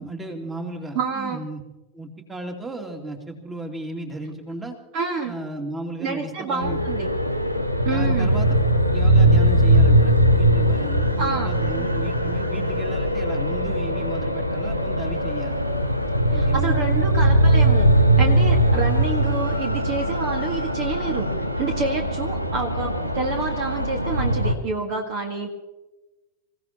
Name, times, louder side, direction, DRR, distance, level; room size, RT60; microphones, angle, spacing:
voice 1, 0.0-1.6 1.9-4.7 5.2-6.8 7.9-8.5 8.9-15.6 16.3-17.0 23.0-23.2, right 1 dB, 10° right, 3 dB, 2.7 m, -35 dB
voice 2, 0.9-1.4 4.9-5.3 6.0-7.1 7.9-8.3 11.2-11.5 16.3-21.3 21.6-25.5, right 4 dB, 40° right, 4 dB, 1.8 m, -28 dB
sound 1, 6.6-24.6, right 1 dB, 85° right, 1.2 m, -20 dB
27.0 x 16.5 x 3.0 m, 1.1 s
figure-of-eight pair, 90°, 0 cm